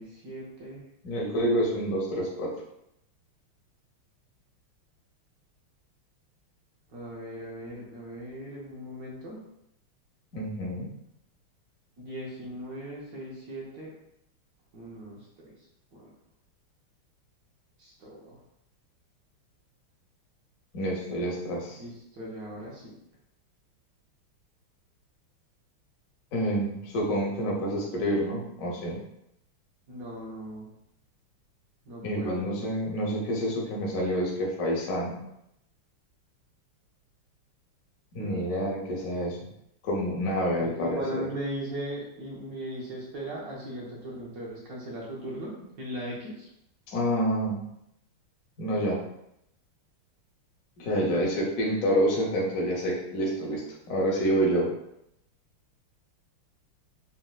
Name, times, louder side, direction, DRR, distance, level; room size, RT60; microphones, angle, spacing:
voice 1, 0.0-0.9 6.9-9.4 12.0-13.9 14.7-15.5 15.9-16.1 17.8-18.4 21.8-22.9 29.9-30.7 31.8-32.4 38.2-38.4 40.5-46.5, right 1 dB, 75° right, -5 dB, 0.8 m, -38 dB
voice 2, 1.0-2.5 10.3-10.9 20.7-21.8 26.3-29.0 32.0-35.1 38.1-39.5 39.8-41.2 46.9-47.6 48.6-49.0 50.8-53.6 53.9-54.7, equal, 75° left, -3 dB, 0.7 m, -28 dB
4.1 x 2.1 x 2.3 m, 0.80 s
omnidirectional pair, 2.4 m